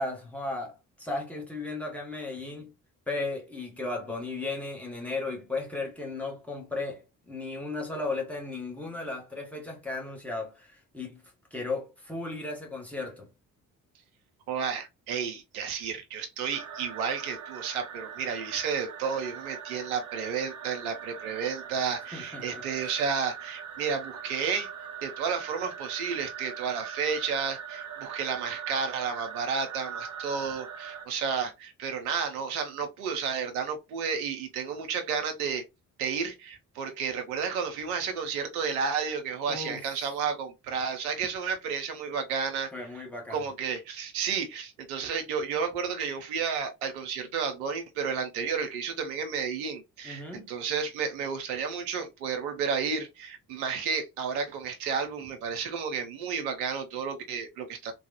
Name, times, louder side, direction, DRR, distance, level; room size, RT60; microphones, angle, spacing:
voice 1, 0.0-2.7 3.1-11.2 11.5-13.3 22.1-22.6 39.5-39.9 42.7-43.5 50.0-50.5, left 3 dB, 5° left, 1.4 m, -35 dB
voice 2, 14.5-24.7 25.0-35.6 36.0-42.7 43.3-57.9, right 6 dB, 70° right, 0.8 m, -32 dB
sound 1, 16.5-31.1, right 7 dB, 40° right, 0.9 m, -41 dB
3.3 x 2.3 x 2.8 m
figure-of-eight pair, 40°, 45 cm